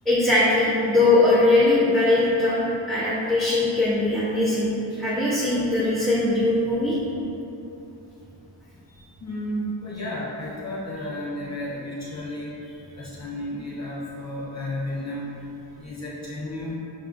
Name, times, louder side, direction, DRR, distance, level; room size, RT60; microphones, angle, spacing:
voice 1, 0.1-7.0, left 2 dB, ahead, -9 dB, 0.5 m, -21 dB
voice 2, 9.2-12.6 13.0-15.3 15.8-16.8, left 1 dB, 35° left, -7 dB, 0.7 m, -32 dB
5.8 x 2.4 x 2.4 m, 2.9 s
wide cardioid pair, 105°, 45 cm